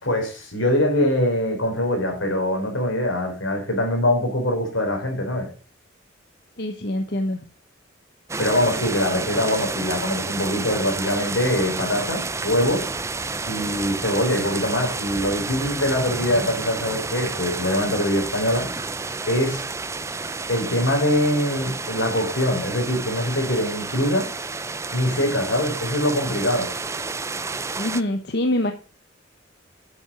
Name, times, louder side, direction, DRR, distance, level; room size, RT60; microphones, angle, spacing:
voice 1, 0.0-5.5 8.4-12.9 13.5-18.7 19.3-19.6 20.5-24.3 24.9-26.7, left 1 dB, 85° left, 3 dB, 4.4 m, -23 dB
voice 2, 6.6-7.4 27.8-28.7, left 1 dB, 55° left, 6 dB, 1.0 m, -24 dB
sound 1, 8.3-28.0, right 3 dB, 15° right, 0.5 m, -30 dB
8.9 x 7.5 x 6.1 m, 0.36 s
head